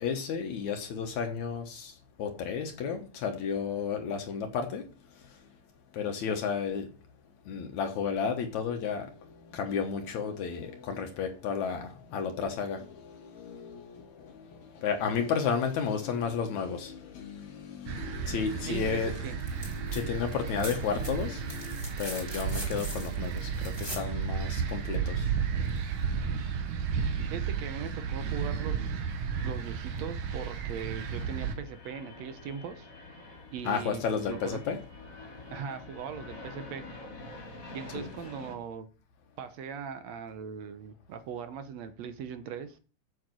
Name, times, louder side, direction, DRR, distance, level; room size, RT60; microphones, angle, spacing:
voice 1, 0.0-4.9 5.9-6.9 7.5-19.2 19.5-25.3 33.6-34.8 37.9-38.1, left 6 dB, 70° left, 2.5 m, -33 dB
sound 1, 17.9-31.5, right 6 dB, 85° right, 2.8 m, -33 dB
voice 2, 18.7-19.4 27.3-29.0 29.4-32.9 33.5-34.6 35.5-36.9 37.7-38.9 39.4-42.8, right 7 dB, 70° right, 2.0 m, -40 dB
sound 2, 19.4-20.0 20.3-24.1 25.8-25.9, equal, 5° right, 4.0 m, -42 dB
sound 3, 26.9-38.5, left 2 dB, 35° left, 2.8 m, -48 dB
8.0 x 7.8 x 6.2 m
omnidirectional pair, 3.5 m